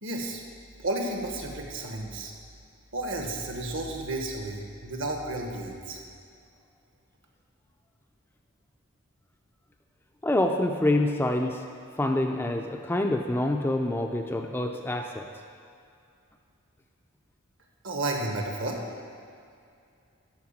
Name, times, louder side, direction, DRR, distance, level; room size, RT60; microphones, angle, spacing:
voice 1, 0.0-0.4 0.8-2.3 2.9-6.0 17.8-18.8, right 2 dB, 60° right, 1 dB, 1.3 m, -32 dB
voice 2, 10.2-11.6 12.0-15.3, left 1 dB, 10° left, 3 dB, 0.4 m, -26 dB
12.0 x 4.7 x 7.3 m, 2.4 s
head